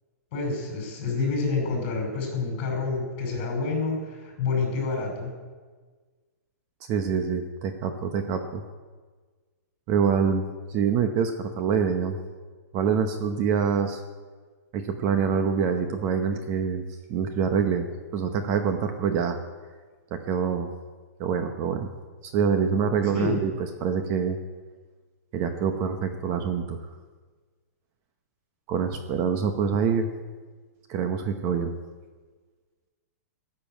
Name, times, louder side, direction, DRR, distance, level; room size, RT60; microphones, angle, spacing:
voice 1, 0.3-5.3 23.1-23.4, left 4 dB, 35° left, 3 dB, 5.3 m, -28 dB
voice 2, 6.9-8.6 9.9-12.2 12.7-14.0 14.7-16.8 17.1-19.4 20.1-20.7 21.2-21.9 22.2-23.5 23.8-24.4 25.3-26.8 28.7-30.1 30.9-31.7, right 6 dB, 30° right, 6 dB, 0.9 m, -25 dB
14.5 x 6.9 x 9.0 m, 1.4 s
hypercardioid pair, 155°, 9 cm